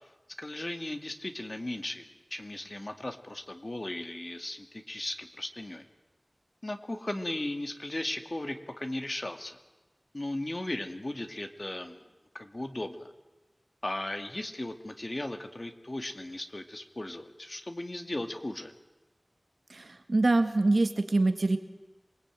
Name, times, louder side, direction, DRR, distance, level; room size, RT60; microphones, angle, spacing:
voice 1, 0.4-5.8 6.6-9.6 10.1-12.0 12.3-13.1 13.8-18.7, left 1 dB, 45° left, 6 dB, 2.2 m, -37 dB
voice 2, 19.7-21.6, right 2 dB, 85° right, 8 dB, 2.1 m, -25 dB
27.0 x 21.0 x 9.2 m, 1.1 s
wide cardioid pair, 55°, 0 cm